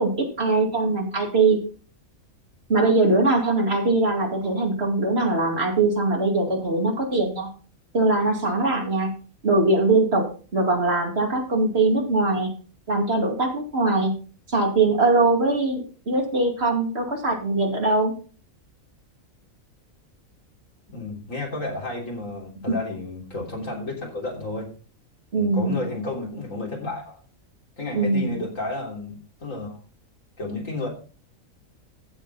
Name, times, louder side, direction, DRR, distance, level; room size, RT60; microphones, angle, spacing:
voice 1, 0.0-1.6 2.7-7.5 7.9-9.1 9.4-10.2 10.5-12.5 12.9-14.1 14.5-18.1 25.3-25.9 27.9-28.4, right 3 dB, 45° right, 1 dB, 2.7 m, -21 dB
voice 2, 20.9-24.7 25.3-27.2 27.8-29.8 30.4-30.9, left 2 dB, 65° left, -1 dB, 3.8 m, -32 dB
15.0 x 6.9 x 4.1 m, 0.38 s
omnidirectional pair, 1.4 m